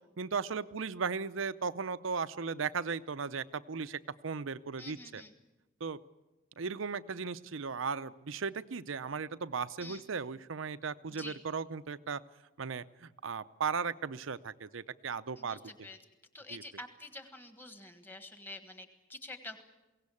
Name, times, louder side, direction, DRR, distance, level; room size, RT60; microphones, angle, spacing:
voice 1, 0.2-5.2 5.8-6.0 6.6-12.2 12.6-15.6 16.5-16.6, right 5 dB, 80° right, 14 dB, 0.7 m, -36 dB
voice 2, 4.8-5.3 9.8-10.0 11.1-11.4 15.4-16.0 16.3-19.6, left 2 dB, 10° left, 7 dB, 1.5 m, -47 dB
22.5 x 17.5 x 8.5 m, 1.1 s
head